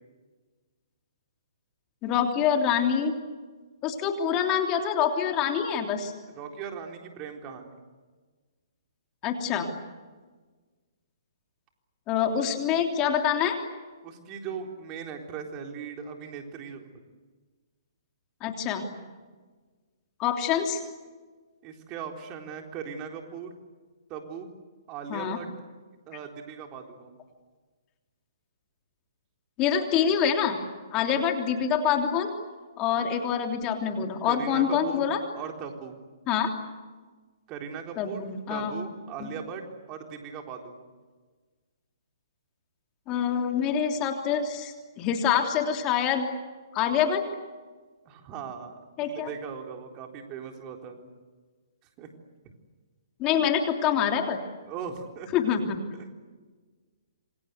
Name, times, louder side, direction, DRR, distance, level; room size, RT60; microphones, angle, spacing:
voice 1, 2.0-3.1 3.8-6.1 9.2-9.7 12.1-13.6 18.4-18.9 20.2-20.8 25.1-25.4 29.6-30.6 30.9-32.3 32.8-35.2 36.3-36.5 38.0-38.7 39.2-39.3 43.1-46.3 46.7-47.2 49.0-49.3 53.2-54.4 55.3-55.8, left 8 dB, 25° left, 4 dB, 3.2 m, -26 dB
voice 2, 6.4-7.8 14.0-16.9 21.6-23.5 24.1-24.5 24.9-25.5 26.1-27.2 34.2-35.1 35.3-35.9 37.5-40.9 48.0-48.7 49.0-51.1 52.0-52.1 54.6-55.6, right 7 dB, 30° right, 3 dB, 3.9 m, -39 dB
27.0 x 26.0 x 8.2 m, 1.4 s
hypercardioid pair, 135°, 2 cm